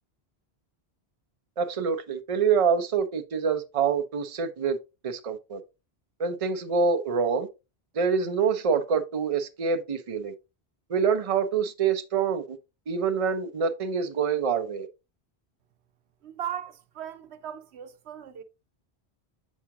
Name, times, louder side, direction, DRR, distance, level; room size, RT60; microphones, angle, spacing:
voice 1, 1.6-4.8 5.0-5.6 6.2-7.5 8.0-10.3 10.9-12.6 12.9-14.9, right 6 dB, 40° right, 0.7 m, -26 dB
voice 2, 16.2-18.4, right 10 dB, 85° right, 1.0 m, -38 dB
7.3 x 4.8 x 2.9 m
omnidirectional pair, 1.1 m